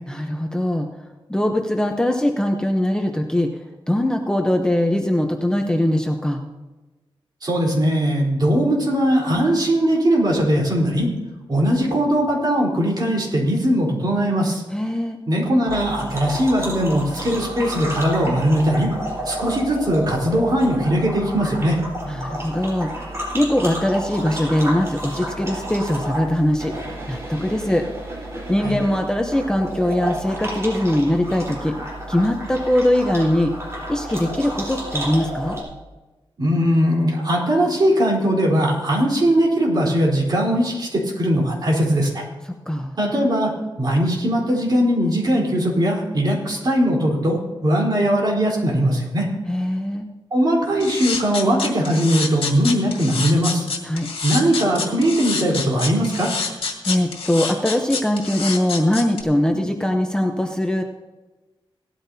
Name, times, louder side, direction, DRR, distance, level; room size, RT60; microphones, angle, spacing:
voice 1, 0.1-0.9 1.3-3.5 3.9-6.4 14.7-15.2 22.1-26.7 27.1-27.8 28.5-31.8 32.1-33.5 33.9-35.6 42.7-42.9 49.5-50.1 53.8-54.1 56.8-60.8, left 1 dB, 10° left, 3 dB, 0.8 m, -21 dB
voice 2, 7.4-11.1 11.5-14.6 15.3-18.9 19.2-21.8 28.6-28.8 36.4-42.2 43.0-43.5 43.8-49.3 50.3-53.7 54.2-56.3, equal, 50° right, -3 dB, 3.9 m, -20 dB
sound 1, 15.7-35.6, right 1 dB, 30° right, 4.2 m, -31 dB
sound 2, 50.8-59.2, left 4 dB, 80° left, 2.0 m, -27 dB
17.5 x 13.0 x 2.8 m, 1.2 s
wide cardioid pair, 150°, 9 cm